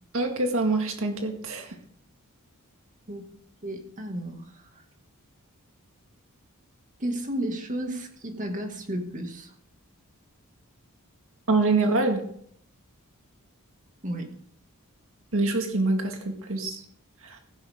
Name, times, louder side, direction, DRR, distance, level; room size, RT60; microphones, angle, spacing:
voice 1, 0.1-1.8 11.5-12.2 15.3-16.8 17.2-17.4, right 3 dB, 65° right, 4 dB, 2.0 m, -25 dB
voice 2, 3.6-4.8 7.0-9.5 14.0-14.3, right 1 dB, 35° right, 4 dB, 2.1 m, -33 dB
16.0 x 10.0 x 3.7 m, 0.64 s
head